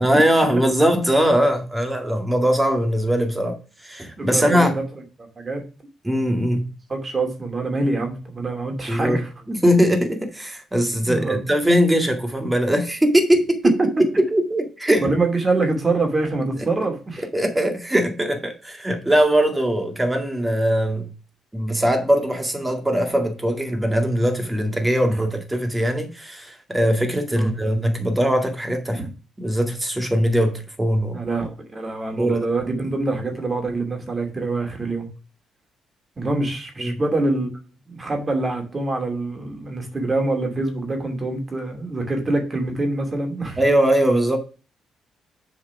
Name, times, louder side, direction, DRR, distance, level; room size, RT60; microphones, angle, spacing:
voice 1, 0.0-4.8 6.0-6.7 8.9-9.2 9.5-13.7 14.2-15.1 17.3-21.1 21.5-29.1 29.4-31.2 32.2-32.4 36.8-36.9 43.6-44.4, equal, 15° right, 2.0 m, -21 dB
voice 2, 4.2-4.8 5.2-5.6 6.9-9.3 11.1-11.4 13.8-13.9 15.0-17.2 27.4-27.6 28.9-29.1 31.1-35.1 36.2-37.5 37.9-43.6, right 2 dB, 30° right, 2.7 m, -25 dB
7.3 x 4.8 x 5.9 m
cardioid pair, 90°, 0 cm